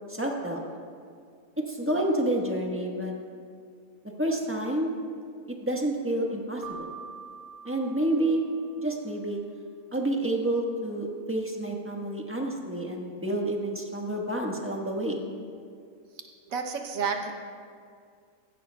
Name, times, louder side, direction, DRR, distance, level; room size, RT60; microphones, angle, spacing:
voice 1, 0.1-0.6 1.7-3.1 4.2-4.9 5.5-6.9 7.6-8.4 8.8-9.4 9.9-15.2, right 1 dB, 10° right, -1 dB, 1.3 m, -29 dB
Keyboard (musical), 6.6-9.2, right 6 dB, 60° right, 1.4 m, -45 dB
voice 2, 16.5-17.3, right 5 dB, 85° right, 4 dB, 1.3 m, -30 dB
16.0 x 15.0 x 2.3 m, 2.2 s
omnidirectional pair, 1.4 m